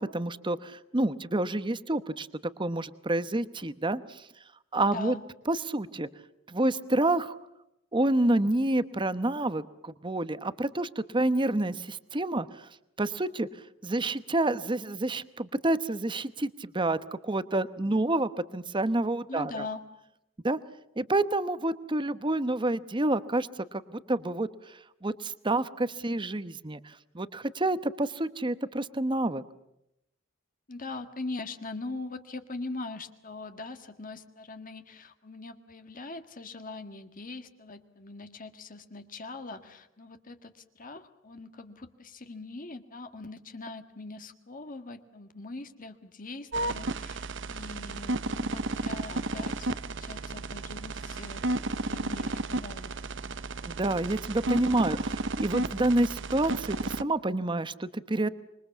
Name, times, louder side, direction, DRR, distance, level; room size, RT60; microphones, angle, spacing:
voice 1, 0.0-2.3 2.6-4.3 4.7-5.1 5.5-6.1 6.5-7.4 7.9-12.7 13.0-13.5 13.8-19.7 20.4-20.6 21.0-29.4 53.7-58.3, right 2 dB, 25° right, 13 dB, 1.0 m, -28 dB
voice 2, 19.3-19.8 30.7-51.4 51.9-52.9 53.2-53.4, left 3 dB, 45° left, 7 dB, 1.7 m, -41 dB
sound 1, 46.5-57.0, right 2 dB, 65° right, 0.9 m, -33 dB
26.0 x 23.0 x 7.2 m, 0.83 s
head